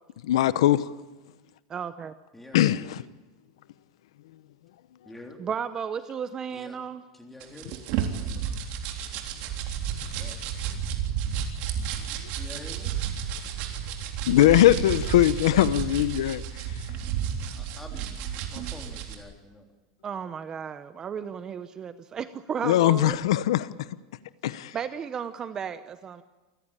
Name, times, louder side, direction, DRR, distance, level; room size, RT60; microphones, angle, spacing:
voice 1, 0.2-0.8 2.5-3.0 14.3-16.4 22.6-23.9 24.4-24.8, left 13 dB, 80° left, 0.9 m, -21 dB
voice 2, 1.7-2.1 5.4-7.0 20.0-23.2 24.7-26.2, right 7 dB, 25° right, 0.8 m, -34 dB
voice 3, 2.3-2.9 5.1-5.4 6.5-6.8 7.2-7.8 8.2-8.5 10.2-10.4 11.9-12.1 12.4-12.9 17.5-19.7, left 1 dB, 5° left, 3.5 m, -46 dB
sound 1, 7.4-19.1, right 8 dB, 50° right, 3.6 m, -32 dB
28.0 x 15.5 x 8.9 m
supercardioid pair, 150°, 3 cm